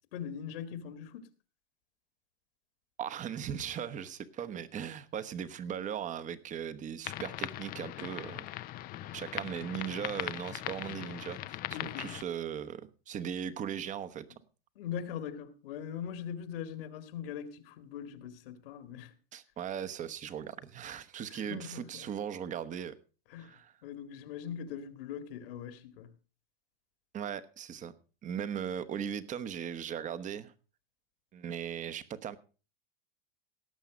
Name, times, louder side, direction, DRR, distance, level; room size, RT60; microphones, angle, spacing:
voice 1, 0.1-1.3 11.7-12.1 14.8-19.1 21.3-22.0 23.3-23.6 23.8-26.1, left 8 dB, 65° left, 2.0 m, -41 dB
voice 2, 3.0-8.5 9.1-14.3 19.3-22.9 23.4-23.7 27.1-27.9 28.2-30.5 31.3-32.4, right 8 dB, 25° right, 1.0 m, -38 dB
sound 1, 7.0-12.2, left 15 dB, 30° left, 0.5 m, -40 dB
17.5 x 7.2 x 5.1 m
supercardioid pair, 130°, 30 cm